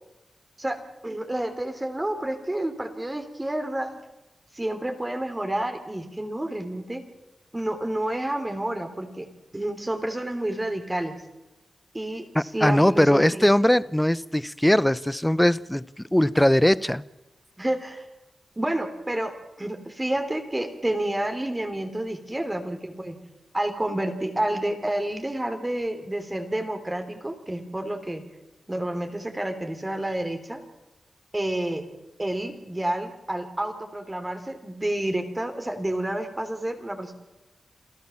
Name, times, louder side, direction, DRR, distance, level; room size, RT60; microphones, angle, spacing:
voice 1, 1.0-4.0 4.5-7.0 7.5-9.3 9.5-11.2 11.9-13.5 17.6-18.1 18.6-19.3 19.6-23.2 23.5-28.2 28.7-30.6 31.3-31.8 32.2-37.1, right 1 dB, 20° right, 6 dB, 3.5 m, -29 dB
voice 2, 12.3-17.0, left 1 dB, 5° left, 18 dB, 0.8 m, -20 dB
28.0 x 16.5 x 7.3 m, 1.0 s
wide cardioid pair, 80°, 0 cm